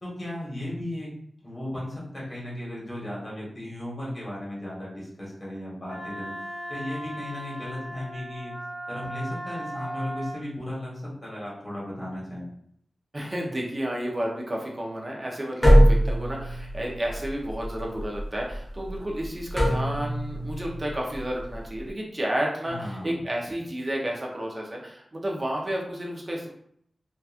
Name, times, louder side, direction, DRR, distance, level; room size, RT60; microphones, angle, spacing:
voice 1, 0.0-1.1 1.4-6.3 6.7-8.5 8.9-12.5 22.7-23.2, left 1 dB, 25° left, -6 dB, 1.2 m, -35 dB
Wind instrument woodwind instrument, 5.9-10.4, right 1 dB, 60° right, 0.8 m, -37 dB
voice 2, 13.1-26.5, equal, 30° right, -2 dB, 0.6 m, -31 dB
sound 1, 15.6-21.9, equal, 10° left, 0.7 m, -23 dB
2.9 x 2.3 x 2.4 m, 0.68 s
wide cardioid pair, 120°, 0 cm